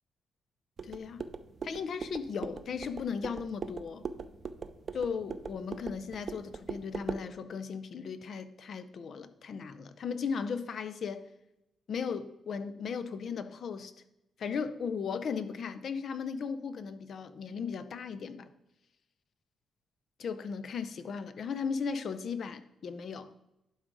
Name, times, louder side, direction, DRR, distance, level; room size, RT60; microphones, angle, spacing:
voice 1, 0.8-1.3 1.6-4.0 4.9-11.2 11.9-13.9 14.4-18.5 20.2-23.3, left 6 dB, 50° left, 0.5 m, -36 dB
sound 1, 0.8-7.3, right 5 dB, 40° right, 0.4 m, -41 dB
11.0 x 3.9 x 4.8 m
cardioid pair, 155°, 0 cm